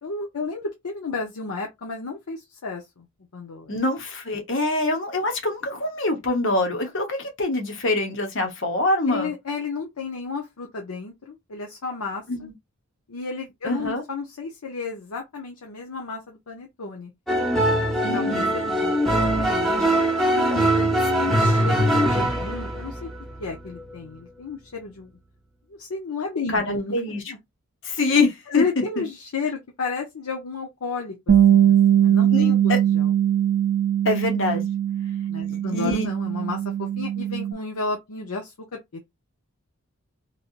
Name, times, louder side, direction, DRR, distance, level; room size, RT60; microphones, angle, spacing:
voice 1, 0.0-3.1 3.3-3.7 9.1-12.5 13.1-17.1 18.1-19.8 20.4-23.1 23.4-25.1 25.8-27.0 27.3-27.4 28.5-33.1 35.3-39.1, left 4 dB, 85° left, 0.7 m, -32 dB
voice 2, 3.7-9.3 12.3-12.5 13.6-14.0 18.0-18.5 26.5-27.2 27.8-28.6 29.0-29.1 32.3-32.8 34.0-34.7 35.5-36.1, left 2 dB, 55° left, 1.0 m, -25 dB
sound 1, 17.3-24.2, right 1 dB, ahead, 0.8 m, -22 dB
Bass guitar, 31.3-37.5, right 10 dB, 70° right, 0.5 m, -20 dB
3.3 x 2.7 x 2.4 m
head